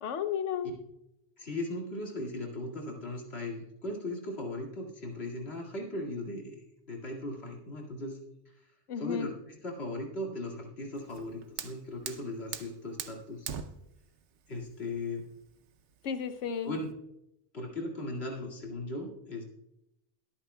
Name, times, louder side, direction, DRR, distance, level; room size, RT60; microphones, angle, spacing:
voice 1, 0.0-0.7 8.9-9.3 16.0-16.8, left 7 dB, 90° left, 10 dB, 1.1 m, -33 dB
voice 2, 1.4-8.2 8.5-8.6 9.0-13.5 14.5-15.3 16.6-16.9 17.5-19.4, left 2 dB, 60° left, -1 dB, 2.4 m, -38 dB
Fire, 11.0-16.9, right 8 dB, 75° right, 1.0 m, -44 dB
21.5 x 8.7 x 2.2 m, 0.85 s
omnidirectional pair, 1.2 m